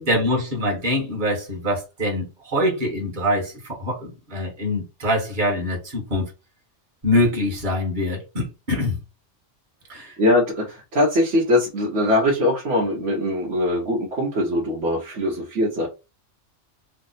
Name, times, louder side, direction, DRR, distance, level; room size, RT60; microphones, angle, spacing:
voice 1, 0.1-6.3 7.0-9.0 9.9-10.1, left 1 dB, 40° right, 1.3 m, -24 dB
voice 2, 10.2-15.9, left 1 dB, 75° right, 1.2 m, -21 dB
3.3 x 2.0 x 3.9 m
omnidirectional pair, 1.2 m